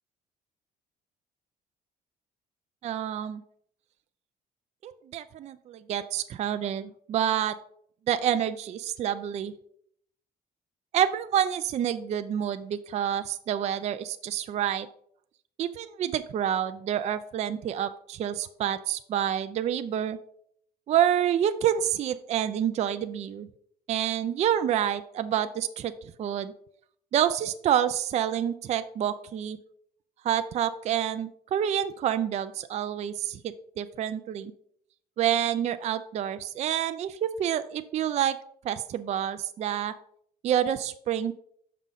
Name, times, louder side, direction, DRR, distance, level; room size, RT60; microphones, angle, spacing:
voice 1, 2.8-3.4 4.8-7.6 8.1-9.5 10.9-14.9 15.6-20.2 20.9-23.5 23.9-26.5 27.1-29.6 30.2-34.5 35.2-38.4 38.6-39.9 40.4-41.3, right 10 dB, 40° right, 11 dB, 0.4 m, -28 dB
6.1 x 5.5 x 3.9 m, 0.67 s
cardioid pair, 110°, 17 cm